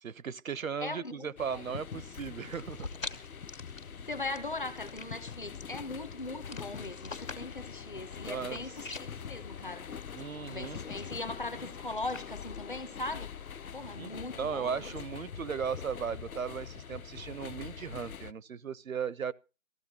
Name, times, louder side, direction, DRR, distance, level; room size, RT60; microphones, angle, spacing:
voice 1, 0.0-2.9 8.3-8.6 10.1-10.8 14.0-19.3, right 7 dB, 75° right, 0.6 m, -37 dB
voice 2, 0.8-1.3 1.5-1.6 4.1-9.9 10.5-13.3 13.7-15.0, left 2 dB, 35° left, 1.0 m, -39 dB
sound 1, 1.4-18.3, left 7 dB, 85° left, 0.7 m, -44 dB
sound 2, 1.8-13.3, left 3 dB, 65° left, 2.0 m, -48 dB
19.0 x 15.0 x 2.8 m
figure-of-eight pair, 165°, 42 cm